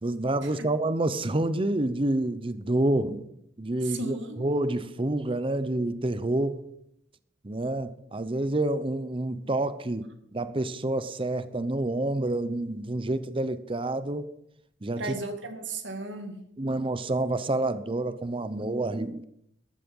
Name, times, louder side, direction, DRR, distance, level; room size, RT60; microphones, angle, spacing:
voice 1, 0.0-3.2 3.6-6.6 7.4-14.3 14.8-15.2 16.6-19.2, right 2 dB, 30° right, 0.8 m, -28 dB
voice 2, 3.8-4.4 15.0-16.4, right 3 dB, 75° right, 2.2 m, -35 dB
14.0 x 12.5 x 5.5 m
head